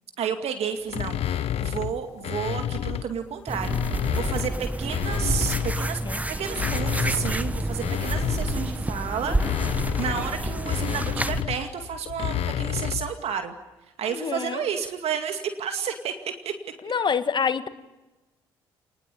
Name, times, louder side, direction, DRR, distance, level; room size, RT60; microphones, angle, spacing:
voice 1, 0.2-6.0 6.3-13.5 14.0-16.5, right 7 dB, 60° right, 6 dB, 2.3 m, -31 dB
sound 1, 0.9-3.1 3.5-5.9 6.4-13.2, left 10 dB, 55° left, 1.0 m, -30 dB
sound 2, 3.5-11.4, right 1 dB, 10° right, 1.4 m, -29 dB
voice 2, 14.1-14.6 16.8-17.7, left 6 dB, 40° left, 11 dB, 1.7 m, -26 dB
29.5 x 20.0 x 8.6 m, 1.1 s
hypercardioid pair, 50°, 12 cm